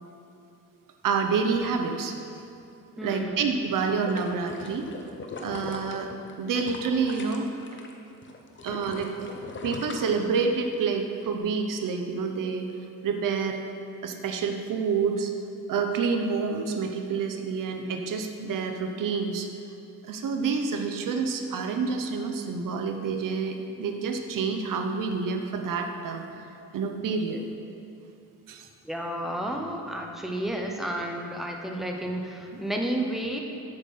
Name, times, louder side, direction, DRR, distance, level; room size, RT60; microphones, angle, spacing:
voice 1, 1.0-2.2 3.0-4.9 5.4-6.1 6.4-7.5 8.6-9.1 9.6-12.7 13.0-13.6 14.0-15.3 15.7-19.5 20.0-26.3 26.7-27.4 28.5-28.7, right 5 dB, 65° right, 5 dB, 0.9 m, -28 dB
voice 2, 3.0-3.4 28.8-33.4, right 1 dB, ahead, 1 dB, 0.8 m, -31 dB
sound 1, 3.8-7.9 8.2-10.7 11.2-11.3, left 3 dB, 35° left, 0.8 m, -40 dB
8.2 x 6.5 x 5.5 m, 2.6 s
cardioid pair, 125°, 35 cm